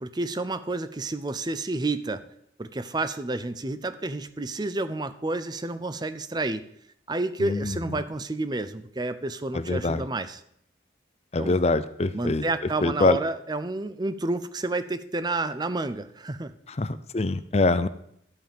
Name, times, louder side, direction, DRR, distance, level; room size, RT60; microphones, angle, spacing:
voice 1, 0.0-2.2 2.6-6.6 7.1-10.4 11.4-11.6 12.1-16.5, right 2 dB, 25° right, 12 dB, 0.6 m, -30 dB
voice 2, 7.4-8.0 9.5-10.0 11.3-12.4 12.8-13.2 16.8-17.9, left 2 dB, 35° left, 13 dB, 0.6 m, -24 dB
12.5 x 5.3 x 7.6 m, 0.71 s
head